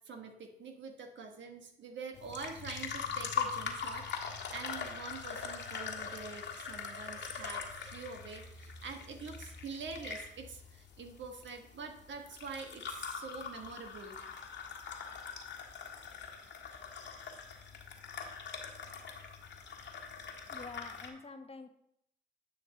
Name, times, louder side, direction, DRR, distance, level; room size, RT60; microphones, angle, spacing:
voice 1, 0.0-14.2, right 4 dB, 70° right, 4 dB, 1.3 m, -45 dB
sound 1, 2.1-21.1, left 6 dB, 65° left, 1.6 m, -42 dB
voice 2, 20.5-21.7, left 3 dB, 30° left, 7 dB, 1.1 m, -47 dB
10.0 x 5.9 x 3.9 m, 0.74 s
supercardioid pair, 45°, 20 cm